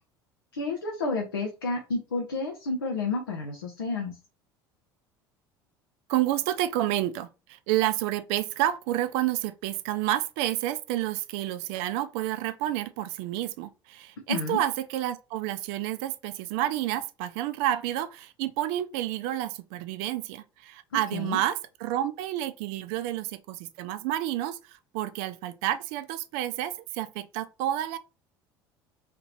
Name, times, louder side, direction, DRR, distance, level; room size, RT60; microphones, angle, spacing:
voice 1, 0.5-4.2 14.3-14.6 21.1-21.4, left 3 dB, 85° left, 0.7 m, -30 dB
voice 2, 6.1-28.0, right 13 dB, 60° right, 0.4 m, -30 dB
3.3 x 2.8 x 3.0 m
hypercardioid pair, 70°, 12 cm